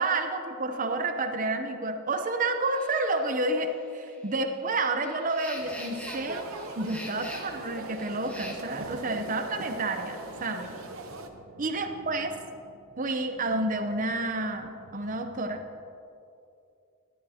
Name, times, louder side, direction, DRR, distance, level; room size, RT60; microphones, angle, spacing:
voice 1, 0.0-10.7 11.6-12.3 13.0-15.6, right 2 dB, 35° right, 6 dB, 0.7 m, -30 dB
sound 1, 2.7-8.5, equal, 5° left, 1.3 m, -45 dB
Open Air Swimming-Pool Ambience, 5.6-11.3, right 2 dB, 65° right, 0.9 m, -40 dB
sound 2, 10.3-15.6, equal, 80° right, 1.5 m, -53 dB
17.0 x 11.0 x 2.8 m, 2.6 s
head